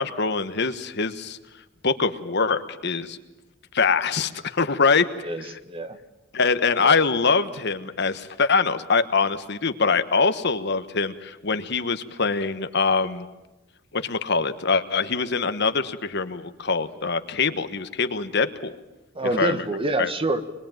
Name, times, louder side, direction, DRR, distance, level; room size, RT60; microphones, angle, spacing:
voice 1, 0.0-1.4 1.8-3.2 3.7-5.0 5.4-5.6 6.3-13.3 13.9-18.7 19.2-19.6 20.0-20.1, left 4 dB, 60° left, 10 dB, 1.3 m, -23 dB
voice 2, 5.2-6.0 6.8-7.0 19.1-20.4, right 2 dB, 30° right, 9 dB, 1.4 m, -27 dB
26.0 x 21.5 x 9.1 m, 1.0 s
head